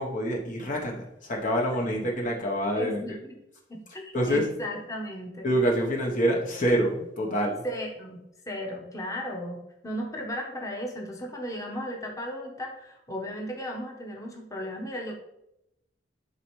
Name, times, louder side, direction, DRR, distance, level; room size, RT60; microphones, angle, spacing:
voice 1, 0.0-3.0 4.1-4.5 5.4-7.6, equal, 45° left, 0 dB, 1.0 m, -26 dB
voice 2, 2.7-3.3 3.7-5.5 7.6-8.2 8.5-15.2, equal, 20° left, 0 dB, 1.2 m, -35 dB
11.0 x 4.2 x 3.2 m, 0.84 s
head